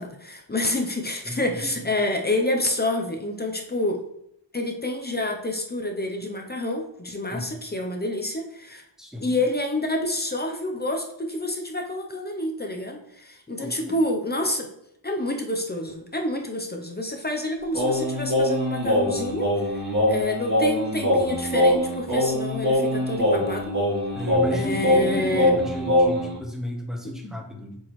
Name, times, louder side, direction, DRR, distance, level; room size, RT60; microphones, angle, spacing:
voice 1, 0.0-4.0 4.5-8.8 9.2-14.7 15.0-23.7 24.5-25.6 27.2-27.3, left 1 dB, 25° left, 2 dB, 0.6 m, -28 dB
voice 2, 9.0-9.4 13.5-13.9 24.1-27.8, left 1 dB, ahead, 1 dB, 0.9 m, -33 dB
Singing, 17.7-26.3, left 1 dB, 45° right, 2.3 m, -23 dB
7.5 x 4.5 x 3.1 m, 0.77 s
wide cardioid pair, 175°, 44 cm